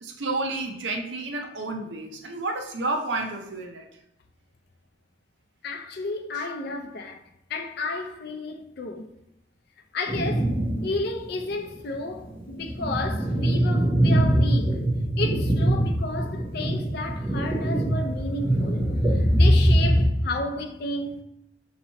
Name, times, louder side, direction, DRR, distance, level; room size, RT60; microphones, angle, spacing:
voice 1, 0.0-3.9 6.4-6.5, right 2 dB, 70° right, 0.6 m, -30 dB
voice 2, 5.6-7.2 7.5-9.1 9.9-14.8 15.2-21.2, left 2 dB, 60° left, 0.5 m, -32 dB
sound 1, 10.1-11.0 11.4-11.5 12.2-20.1, right 1 dB, 10° right, 0.9 m, -22 dB
5.3 x 2.9 x 2.8 m
head